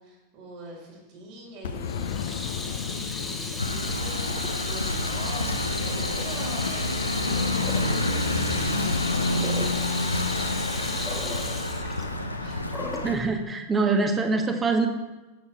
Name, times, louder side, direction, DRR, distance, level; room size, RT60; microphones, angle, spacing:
voice 1, 0.0-11.8 12.4-12.7, right 1 dB, 45° right, -3 dB, 4.4 m, -44 dB
Boom, 1.6-6.3, left 7 dB, 60° left, 0.8 m, -36 dB
Water tap faucet / Sink (filling or washing), 1.8-13.1, left 3 dB, 10° left, 1.4 m, -35 dB
sound 1, 3.6-13.1, left 2 dB, 85° left, 0.9 m, -28 dB
voice 2, 13.0-14.9, right 3 dB, 15° right, 5 dB, 1.4 m, -24 dB
17.0 x 7.5 x 3.4 m, 1.1 s
figure-of-eight pair, 90°, 0 cm